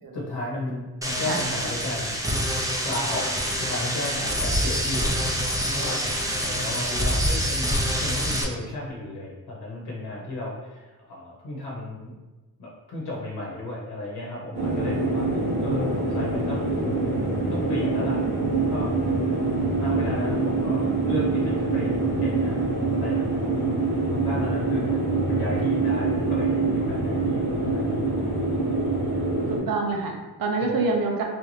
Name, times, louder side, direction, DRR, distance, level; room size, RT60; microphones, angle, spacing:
voice 1, 0.1-2.2 2.8-3.3 3.6-5.4 5.7-7.7 8.0-12.2 12.6-16.7 17.5-18.2 18.7-18.9 19.8-22.8 23.0-23.6 24.0-27.9 30.6-30.7, left 1 dB, 80° left, -4 dB, 0.9 m, -34 dB
sound 1, 1.0-8.4, equal, 10° right, 0.5 m, -26 dB
sound 2, 14.5-29.6, right 3 dB, 90° right, 1.3 m, -25 dB
voice 2, 29.5-31.2, right 3 dB, 65° right, 1 dB, 0.7 m, -26 dB
3.3 x 2.6 x 3.1 m, 1.2 s
wide cardioid pair, 95°, 38 cm